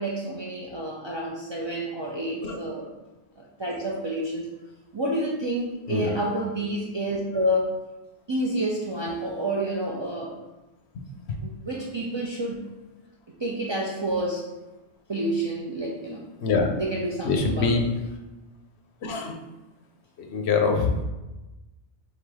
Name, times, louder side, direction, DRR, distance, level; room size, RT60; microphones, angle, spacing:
voice 1, 0.0-2.9 3.4-4.5 4.9-7.8 8.3-10.3 11.4-12.6 13.4-14.5 15.1-16.2 16.8-17.8, right 1 dB, 40° right, -4 dB, 0.4 m, -29 dB
voice 2, 5.9-6.2 10.9-11.0 16.4-16.7 17.2-17.8 19.0-19.4 20.2-21.0, left 4 dB, 70° left, 3 dB, 0.9 m, -24 dB
3.7 x 2.7 x 4.7 m, 1.1 s
omnidirectional pair, 1.1 m